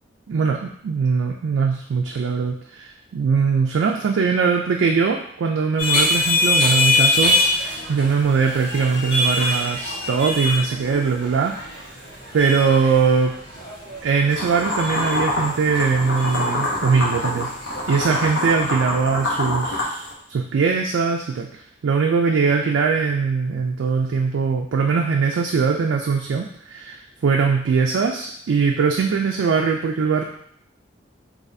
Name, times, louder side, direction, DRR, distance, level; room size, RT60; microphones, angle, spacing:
voice 1, 0.3-11.5 12.0-12.1 12.3-13.3 14.0-17.5 17.9-20.0 20.3-21.5 21.8-30.2, right 5 dB, 80° right, 1 dB, 0.4 m, -21 dB
sound 1, 5.8-18.5, left 2 dB, 60° left, 1.3 m, -25 dB
sound 2, 14.3-20.1, left 1 dB, 85° left, 1.1 m, -26 dB
4.0 x 2.7 x 2.6 m, 0.67 s
head